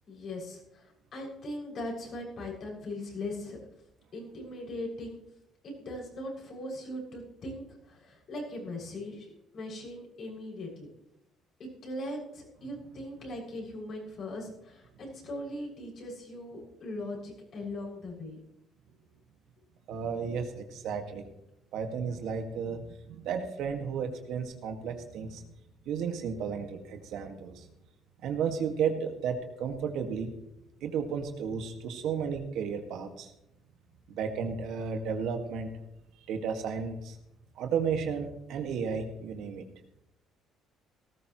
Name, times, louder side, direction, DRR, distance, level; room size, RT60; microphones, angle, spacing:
voice 1, 0.1-3.6 4.1-5.2 5.6-10.9 11.6-18.4, left 1 dB, 55° left, -2 dB, 6.8 m, -40 dB
voice 2, 19.9-21.3 21.7-25.5 25.9-27.7 28.2-30.3 30.8-33.3 34.1-35.7 36.3-37.2 37.6-39.7, right 6 dB, 75° right, 5 dB, 2.0 m, -33 dB
18.0 x 14.0 x 3.2 m, 0.84 s
cardioid pair, 100°, 0 cm